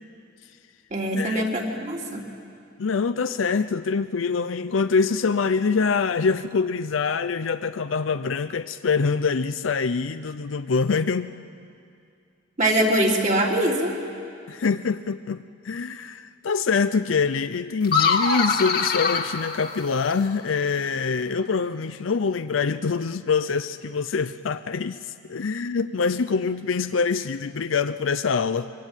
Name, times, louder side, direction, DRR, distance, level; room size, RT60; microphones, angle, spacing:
voice 1, 0.9-2.2 12.6-13.9, right 1 dB, 40° right, -1 dB, 3.3 m, -23 dB
voice 2, 2.8-11.4 14.5-28.7, left 5 dB, 85° left, 10 dB, 0.6 m, -25 dB
sound 1, 17.8-20.3, left 5 dB, 50° left, 1.8 m, -24 dB
25.0 x 23.0 x 9.0 m, 2.4 s
head